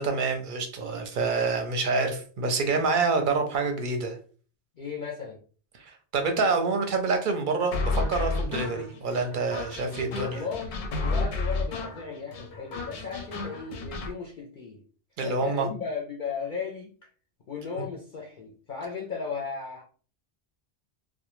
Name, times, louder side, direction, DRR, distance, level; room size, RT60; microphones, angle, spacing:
voice 1, 0.0-4.2 6.1-10.4 15.2-15.7 17.8-17.9, right 4 dB, 60° right, 5 dB, 0.6 m, -27 dB
voice 2, 4.8-5.4 10.1-14.8 15.2-16.9 17.5-19.8, left 5 dB, 60° left, -1 dB, 0.6 m, -36 dB
sound 1, 7.7-14.1, left 3 dB, 85° left, 0.9 m, -31 dB
2.2 x 2.2 x 3.0 m, 0.40 s
omnidirectional pair, 1.1 m